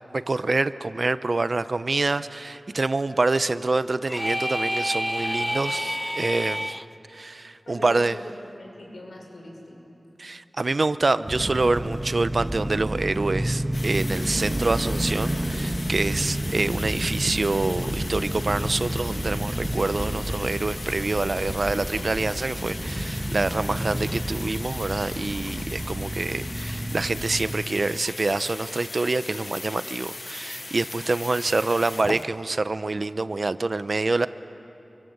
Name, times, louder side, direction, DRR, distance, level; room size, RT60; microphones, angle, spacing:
voice 1, 0.1-6.7 7.1-8.1 10.2-34.3, right 3 dB, 55° right, 13 dB, 0.7 m, -26 dB
sound 1, 4.1-6.9, equal, 5° left, 0.7 m, -28 dB
voice 2, 7.6-10.0, left 1 dB, 80° left, 0 dB, 5.8 m, -42 dB
sound 2, 11.3-27.5, right 1 dB, 20° right, 1.7 m, -30 dB
sound 3, 13.7-32.3, left 2 dB, 50° left, 0.9 m, -38 dB
29.0 x 25.0 x 8.0 m, 2.9 s
wide cardioid pair, 75°, 0 cm